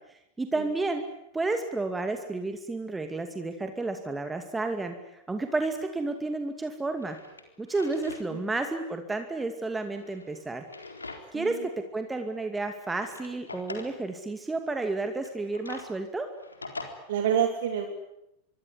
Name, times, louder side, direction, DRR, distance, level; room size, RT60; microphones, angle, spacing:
voice 1, 0.1-1.0 1.3-7.2 7.6-10.6 11.3-16.3, right 3 dB, 10° right, 6 dB, 2.4 m, -31 dB
Drawer open or close, 6.2-6.3 6.9-8.3 8.6-8.7 9.8-11.5 11.9-12.0 12.8-14.0 15.1-16.9, left 3 dB, 80° left, 4.0 m, -43 dB
voice 2, 11.3-11.6 17.1-17.9, right 8 dB, 55° right, 5 dB, 3.3 m, -27 dB
25.5 x 23.5 x 9.8 m, 0.83 s
figure-of-eight pair, 90°, 0 cm